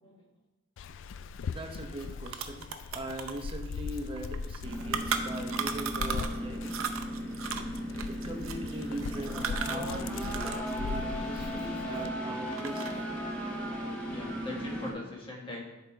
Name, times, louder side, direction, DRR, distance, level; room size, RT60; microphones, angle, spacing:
Dog, 0.8-12.1, left 5 dB, 60° left, 0.3 m, -40 dB
voice 1, 1.5-6.8 8.1-13.1, right 1 dB, 25° right, 3 dB, 0.9 m, -41 dB
sound 1, 1.7-1.8 2.0-6.4 6.7-10.7 11.0-12.1 12.5-13.1, right 7 dB, 70° right, 0.6 m, -36 dB
sound 2, 4.6-14.9, equal, 5° left, 1.2 m, -36 dB
voice 2, 13.7-15.6, left 2 dB, 25° left, -2 dB, 1.6 m, -43 dB
11.0 x 3.7 x 4.5 m, 0.98 s
head